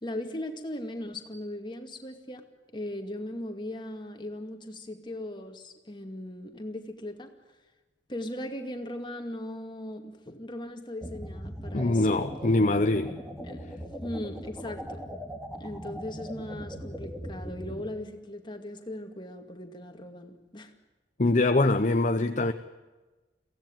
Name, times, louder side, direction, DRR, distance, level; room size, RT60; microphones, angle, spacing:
voice 1, 0.0-2.4 2.7-7.3 8.1-12.2 13.4-15.0 15.5-20.7, left 1 dB, 25° left, 2.3 m, -38 dB
sound 1, 11.0-17.8, equal, 5° right, 2.4 m, -40 dB
voice 2, 11.7-13.2 21.2-22.5, left 2 dB, 45° left, 0.8 m, -23 dB
23.0 x 16.5 x 9.0 m
head